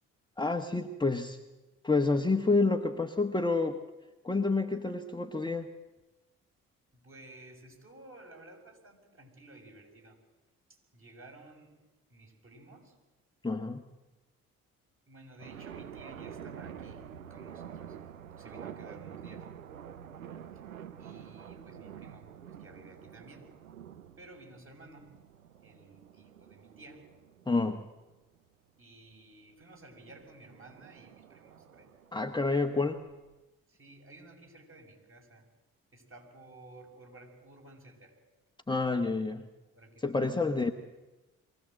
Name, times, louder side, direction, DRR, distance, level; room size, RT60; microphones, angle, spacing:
voice 1, 0.4-1.4 1.8-3.8 4.2-5.7 13.4-13.8 27.5-27.8 32.1-33.0 38.7-39.5 40.0-40.7, left 3 dB, 10° left, 5 dB, 1.2 m, -28 dB
voice 2, 6.9-10.2 10.7-13.0 15.1-18.0 18.4-19.5 20.5-20.6 21.0-23.5 24.2-25.2 25.6-27.1 28.8-32.0 33.7-35.5 35.9-38.2 39.8-40.1, right 2 dB, 30° right, 1 dB, 6.9 m, -54 dB
sound 1, 15.4-28.4 29.8-33.4, right 9 dB, 85° right, 0.7 m, -48 dB
23.5 x 17.0 x 7.9 m, 1.1 s
figure-of-eight pair, 45°, 40 cm